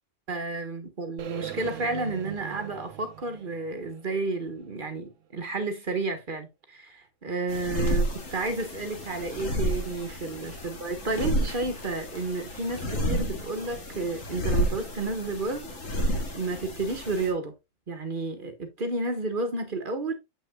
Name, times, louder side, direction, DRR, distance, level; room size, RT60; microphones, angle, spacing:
voice 1, 0.3-15.7 16.1-17.5 17.9-20.1, right 3 dB, 45° right, 1.3 m, -31 dB
sound 1, 1.2-5.2, right 10 dB, 75° right, 1.1 m, -41 dB
sound 2, 7.5-17.3, equal, 80° left, 2.2 m, -31 dB
7.6 x 6.2 x 2.2 m
omnidirectional pair, 1.3 m